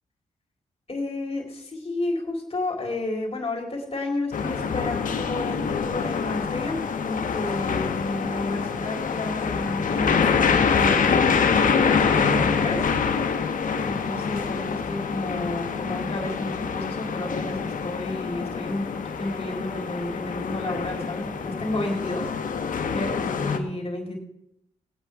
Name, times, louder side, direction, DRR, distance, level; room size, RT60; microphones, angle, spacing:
voice 1, 0.9-6.8 7.0-11.5 11.9-12.8 13.8-18.9 19.2-22.3 22.9-24.2, left 2 dB, 45° left, 1 dB, 4.1 m, -31 dB
sound 1, 4.3-23.6, left 6 dB, 70° left, 1.3 m, -25 dB
20.0 x 8.9 x 3.7 m, 0.79 s
supercardioid pair, 50°, 14 cm